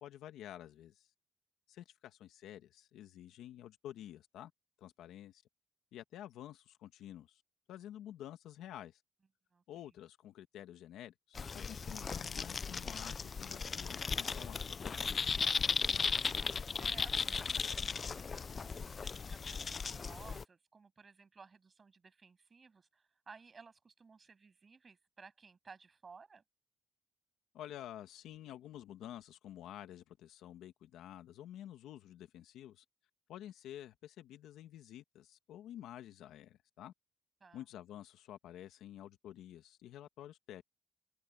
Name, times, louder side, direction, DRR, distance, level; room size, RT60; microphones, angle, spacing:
voice 1, 0.0-1.1 1.7-4.5 4.8-5.4 5.9-7.4 7.7-9.0 9.7-15.1 27.5-32.8 33.3-36.9 37.5-40.6, left 12 dB, 85° left, 1.4 m, -50 dB
sound 1, 11.3-20.4, left 5 dB, 40° left, 0.4 m, -36 dB
voice 2, 16.8-26.4 37.4-37.6, right 5 dB, 35° right, 7.6 m, -57 dB
cardioid pair, 90°, 0 cm